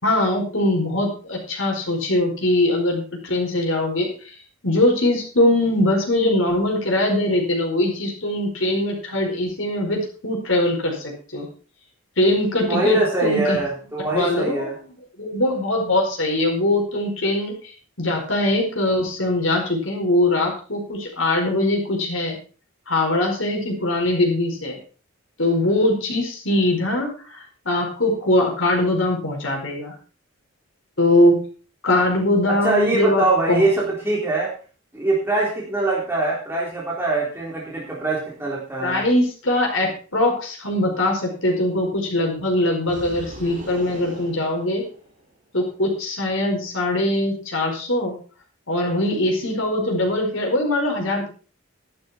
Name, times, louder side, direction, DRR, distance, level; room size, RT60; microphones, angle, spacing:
voice 1, 0.0-4.1 4.6-11.5 12.2-13.6 14.1-14.7 15.2-22.4 22.9-24.8 25.4-29.9 31.0-31.4 31.8-33.6 38.8-44.8 45.5-48.1 48.7-51.3, left 1 dB, 65° left, 1 dB, 4.7 m, -21 dB
voice 2, 12.7-14.7 32.5-34.5 34.9-39.0, right 2 dB, 10° right, -5 dB, 3.5 m, -23 dB
sound 1, 42.8-45.3, right 1 dB, 40° right, 4.9 m, -40 dB
12.0 x 11.5 x 4.3 m, 0.38 s
head